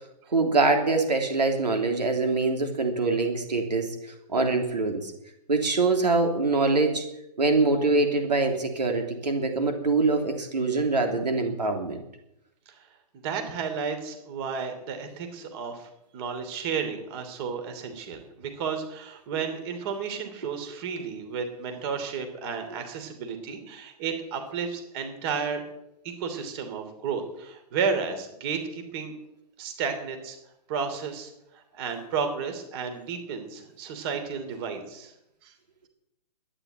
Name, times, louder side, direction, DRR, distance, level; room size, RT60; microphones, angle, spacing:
voice 1, 0.3-3.9 4.3-5.1 5.5-7.0 7.4-12.0, right 3 dB, 85° right, 4 dB, 3.2 m, -24 dB
voice 2, 13.2-25.6 26.0-29.1 29.6-30.4 30.7-35.1 35.4-35.5, right 6 dB, 40° right, 6 dB, 3.0 m, -32 dB
12.5 x 10.0 x 9.0 m, 0.83 s
hypercardioid pair, 135°, 21 cm